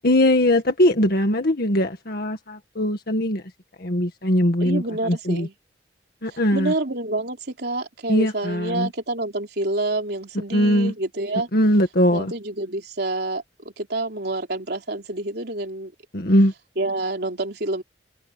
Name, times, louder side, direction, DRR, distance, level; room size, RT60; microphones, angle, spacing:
voice 1, 0.0-3.4 3.8-5.5 6.2-6.7 8.1-8.9 10.5-10.9 11.5-12.3 16.1-16.5, left 1 dB, 60° left, 1.9 m, -20 dB
voice 2, 4.6-5.5 6.3-11.5 12.1-15.9 16.8-17.8, right 2 dB, 65° right, 3.7 m, -28 dB
head